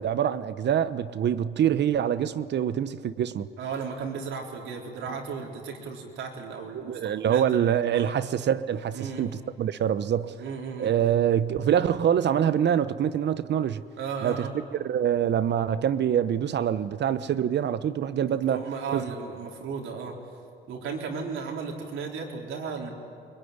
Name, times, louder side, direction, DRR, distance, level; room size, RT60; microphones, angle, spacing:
voice 1, 0.0-3.5 6.7-10.3 10.8-13.8 14.2-14.5 14.8-18.6 18.9-19.0, right 9 dB, 60° right, 0.9 m, -25 dB
voice 2, 3.6-7.7 7.9-8.1 8.9-9.3 10.4-10.9 14.0-14.5 18.3-20.2 20.7-23.0, right 5 dB, 80° right, 3.9 m, -35 dB
24.0 x 22.0 x 9.7 m
cardioid pair, 90°, 20 cm